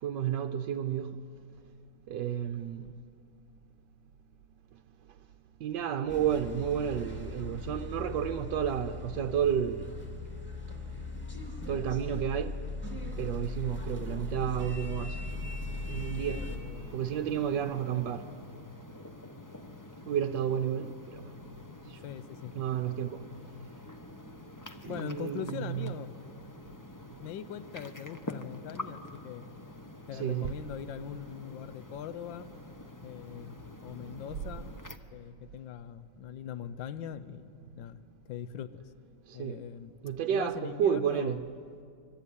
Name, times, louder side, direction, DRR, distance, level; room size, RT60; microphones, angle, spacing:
voice 1, 0.0-1.2 2.1-2.9 5.6-9.9 11.7-12.5 13.2-15.2 15.9-16.4 16.9-18.3 20.1-21.3 21.8-22.0 22.5-23.2 24.8-25.9 30.1-30.5 34.0-34.1 39.3-39.6 40.0-41.4, right 9 dB, 65° right, 1.3 m, -31 dB
sound 1, 6.1-16.6, left 2 dB, 5° left, 3.0 m, -39 dB
sound 2, 15.3-35.0, left 2 dB, 25° left, 0.4 m, -47 dB
voice 2, 16.4-16.9 22.0-22.5 24.9-26.1 27.2-29.5 30.1-32.5 33.0-34.7 35.1-37.5 37.8-38.8 39.3-39.9 40.3-41.5, left 9 dB, 65° left, 1.5 m, -41 dB
25.0 x 23.5 x 9.8 m
omnidirectional pair, 2.4 m